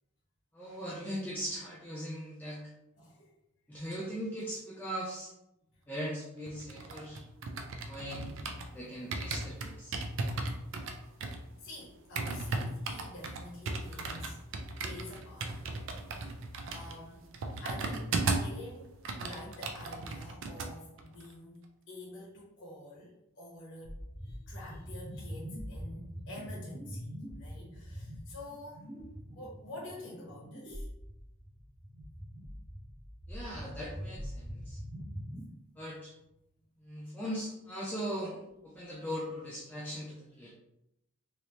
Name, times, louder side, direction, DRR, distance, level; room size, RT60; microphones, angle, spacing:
voice 1, 0.5-2.6 3.7-5.3 5.9-7.2 7.8-8.3 8.7-9.9 33.3-34.8 35.8-36.1 36.8-40.5, equal, 10° left, -5 dB, 0.4 m, -39 dB
voice 2, 3.0-3.3 4.4-4.5 11.2-11.3 11.6-14.4 14.8-15.7 16.0-16.4 16.7-17.2 17.6-24.0 24.2-27.1 27.4-28.9 29.3-30.9, left 1 dB, 55° left, -5 dB, 0.9 m, -48 dB
sound 1, 6.5-8.7 9.1-18.6 18.9-20.7 21.0-21.3, right 3 dB, 55° right, 0.4 m, -36 dB
sound 2, 23.8-35.4, equal, 15° right, 0.8 m, -44 dB
3.2 x 2.7 x 2.9 m, 0.85 s
head